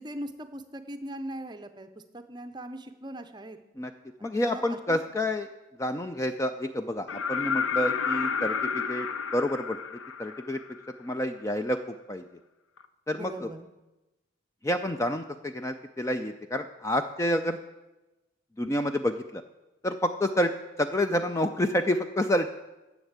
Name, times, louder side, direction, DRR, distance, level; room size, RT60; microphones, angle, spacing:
voice 1, 0.0-1.9 2.1-3.6 4.2-5.0 13.1-13.7, right 1 dB, 20° right, 8 dB, 0.6 m, -40 dB
voice 2, 4.2-5.5 5.8-9.8 10.2-10.6 11.0-12.2 13.1-13.5 14.6-17.6 18.6-19.4 19.8-20.5 20.8-22.5, left 1 dB, 15° left, 7 dB, 0.3 m, -28 dB
sound 1, 7.1-10.9 12.8-12.9, left 6 dB, 80° left, 0.7 m, -30 dB
10.0 x 7.3 x 8.0 m, 1.0 s
head